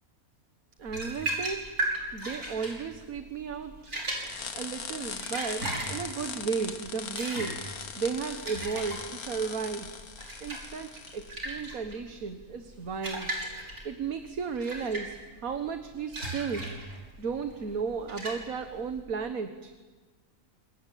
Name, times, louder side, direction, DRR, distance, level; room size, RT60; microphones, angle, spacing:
voice 1, 0.8-1.7 2.1-3.9 4.5-7.6 8.0-9.9 10.4-13.3 13.8-15.2 15.4-16.6 17.2-19.7, right 5 dB, 70° right, 7 dB, 1.8 m, -34 dB
Bottle Swishing, 0.8-19.0, right 1 dB, 90° right, 6.4 m, -37 dB
sound 1, 4.2-11.4, left 6 dB, 80° left, 1.9 m, -40 dB
27.0 x 23.0 x 9.1 m, 1.3 s
omnidirectional pair, 1.5 m